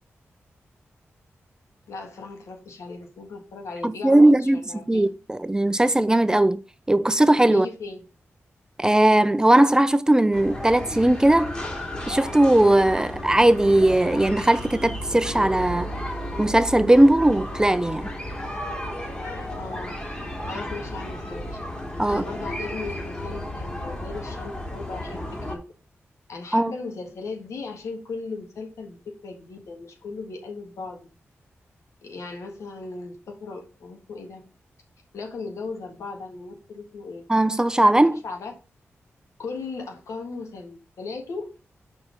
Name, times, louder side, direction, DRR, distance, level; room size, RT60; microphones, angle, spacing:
voice 1, 1.9-5.1 7.5-8.0 19.5-20.1 20.5-21.6 22.1-25.2 25.5-25.6 26.3-31.1 32.0-34.4 35.1-37.2 38.1-38.5 39.4-41.6, left 4 dB, 85° left, 1.5 m, -37 dB
voice 2, 3.8-4.6 4.9-6.6 6.9-7.7 8.8-11.6 12.1-15.9 16.4-18.1 22.0-22.2 26.5-26.7 37.3-38.2, right 1 dB, 15° right, 0.5 m, -18 dB
sound 1, 10.3-25.6, left 1 dB, 20° left, 2.4 m, -33 dB
5.5 x 4.5 x 5.0 m
cardioid pair, 70°, 5 cm